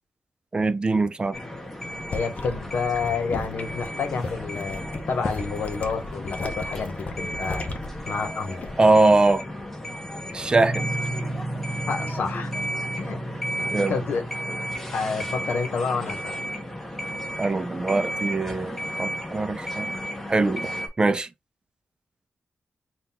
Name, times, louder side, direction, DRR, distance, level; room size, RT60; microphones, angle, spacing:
voice 1, 0.5-1.4 8.8-9.4 10.3-10.9 13.7-14.0 17.4-19.9 20.3-21.3, right 3 dB, 25° right, 0.3 m, -22 dB
sound 1, 1.3-20.9, equal, 10° left, 0.8 m, -34 dB
sound 2, 1.9-9.0 9.3-9.7, left 3 dB, 50° left, 0.7 m, -35 dB
voice 2, 2.1-7.7 8.0-8.7 11.9-12.5 13.0-13.2 13.5-14.2 14.9-16.4, left 5 dB, 90° left, 0.9 m, -29 dB
sound 3, 10.5-19.2, right 2 dB, 45° right, 0.8 m, -36 dB
3.8 x 2.3 x 4.1 m
wide cardioid pair, 120°, 3 cm